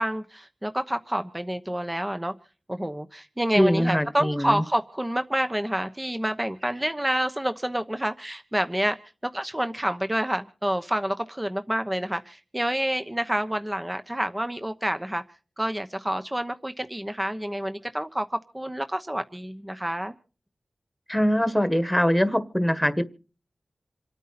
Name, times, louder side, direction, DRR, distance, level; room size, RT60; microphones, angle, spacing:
voice 1, 0.0-2.3 2.7-9.0 9.2-15.2 15.6-20.1, right 1 dB, 15° right, 8 dB, 1.0 m, -28 dB
voice 2, 3.5-4.6 21.1-23.0, equal, 5° left, 11 dB, 1.6 m, -22 dB
27.5 x 9.2 x 4.3 m, 0.37 s
cardioid pair, 50°, 0 cm